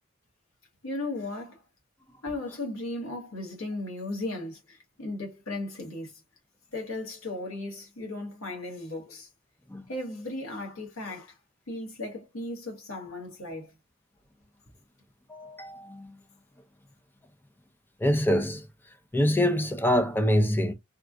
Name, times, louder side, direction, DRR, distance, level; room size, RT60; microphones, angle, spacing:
voice 1, 0.8-1.6 2.2-6.1 6.7-9.3 9.9-11.3 11.7-13.7, left 2 dB, 85° left, 1.8 m, -36 dB
voice 2, 15.3-16.1 18.0-18.6 19.1-20.7, equal, 10° left, 0.5 m, -25 dB
3.7 x 2.2 x 2.5 m
head